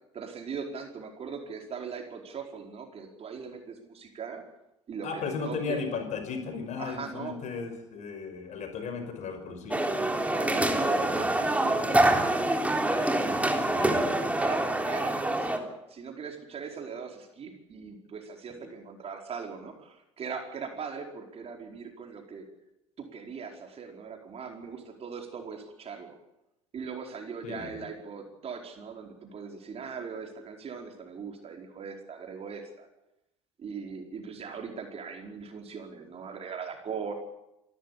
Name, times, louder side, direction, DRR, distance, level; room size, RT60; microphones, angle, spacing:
voice 1, 0.1-4.4 4.9-5.9 6.8-7.4 9.9-13.2 13.7-22.4 23.0-26.2 26.7-32.9 33.6-37.1, right 6 dB, 40° right, 3 dB, 4.8 m, -40 dB
voice 2, 5.0-9.8 13.7-14.1 27.4-27.8, left 5 dB, 50° left, 7 dB, 5.6 m, -35 dB
sound 1, 9.7-15.6, right 1 dB, 10° right, 3.4 m, -26 dB
27.0 x 13.5 x 8.5 m, 0.90 s
hypercardioid pair, 60°, 15 cm